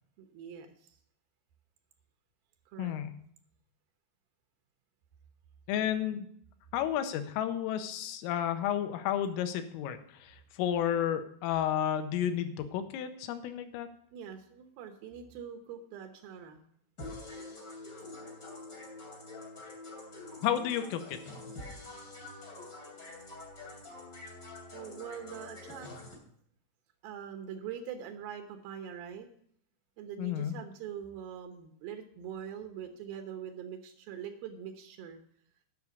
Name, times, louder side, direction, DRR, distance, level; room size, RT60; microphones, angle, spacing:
voice 1, 0.2-1.0 2.7-3.0 14.1-16.6 24.7-25.9 27.0-29.3 30.0-35.2, right 8 dB, 85° right, 5 dB, 2.1 m, -43 dB
voice 2, 2.8-3.1 5.7-6.3 6.7-13.9 20.4-21.2 30.2-30.5, left 10 dB, 90° left, 8 dB, 3.3 m, -32 dB
sound 1, 17.0-26.1, left 2 dB, 25° left, 2.5 m, -46 dB
10.5 x 5.9 x 8.2 m, 0.64 s
omnidirectional pair, 5.9 m